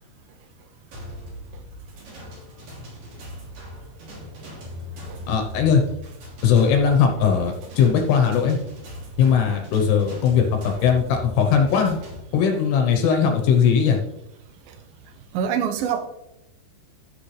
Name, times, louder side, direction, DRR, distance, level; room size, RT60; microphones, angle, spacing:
sound 1, 0.9-12.2, equal, 50° right, 4.4 m, -39 dB
voice 1, 5.3-5.8 6.4-8.6 9.2-12.0 12.3-14.0, left 7 dB, 75° left, 4 dB, 3.0 m, -19 dB
voice 2, 7.1-7.7 9.5-9.6 10.1-10.2 10.8-10.9 11.6-11.7 12.4-12.6 14.7-16.1, right 8 dB, 75° right, 7 dB, 2.1 m, -30 dB
14.0 x 6.8 x 3.3 m, 0.84 s
omnidirectional pair, 5.2 m